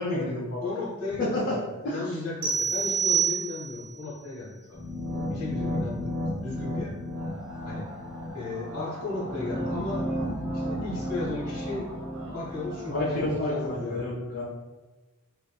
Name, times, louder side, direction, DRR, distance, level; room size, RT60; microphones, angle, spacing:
voice 1, 0.0-0.7 1.2-1.6 1.8-2.2 12.9-14.4, left 1 dB, 55° left, -6 dB, 0.5 m, -29 dB
voice 2, 0.6-4.8 5.1-6.1 6.4-7.0 7.6-7.9 8.3-10.1 10.5-11.9 12.3-14.0, left 3 dB, 85° left, -5 dB, 1.0 m, -35 dB
sound 1, 2.4-3.9, right 7 dB, 55° right, 0.4 m, -26 dB
sound 2, 4.7-13.7, equal, 10° right, 0.8 m, -34 dB
sound 3, 7.1-13.3, right 1 dB, 75° right, 1.0 m, -44 dB
2.5 x 2.5 x 2.3 m, 1.2 s
head